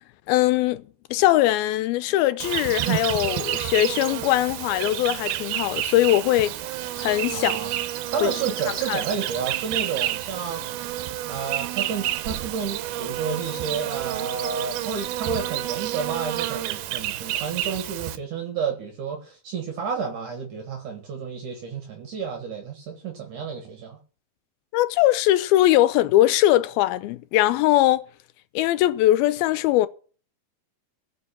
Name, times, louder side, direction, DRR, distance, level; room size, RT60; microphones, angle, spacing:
voice 1, 0.3-0.8 1.1-6.5 7.0-7.7 8.2-8.3 8.9-9.0 24.7-28.1 28.6-29.9, left 15 dB, 85° left, 2.6 m, -21 dB
Insect, 2.4-18.2, right 14 dB, 85° right, 2.7 m, -29 dB
voice 2, 7.3-7.7 8.1-10.6 11.3-24.0, right 6 dB, 60° right, 2.8 m, -31 dB
15.5 x 6.0 x 7.2 m
omnidirectional pair, 4.3 m